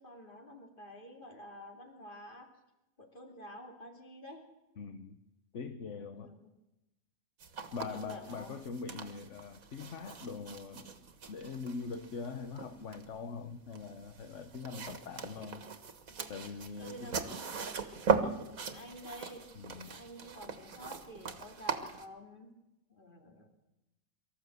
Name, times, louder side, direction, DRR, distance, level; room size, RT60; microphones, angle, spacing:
voice 1, 0.0-2.5 3.0-4.5 6.1-6.5 7.7-8.6 16.8-17.2 18.2-19.5 19.7-22.5 22.9-23.5, equal, 35° left, 2 dB, 3.1 m, -50 dB
voice 2, 4.8-5.2 5.5-6.3 7.7-10.9 11.3-15.6 16.3-17.1 19.6-20.0, left 5 dB, 60° left, 8 dB, 1.3 m, -42 dB
sound 1, 7.4-22.0, right 5 dB, 80° right, 1.9 m, -39 dB
24.0 x 13.5 x 8.0 m, 0.96 s
omnidirectional pair, 1.4 m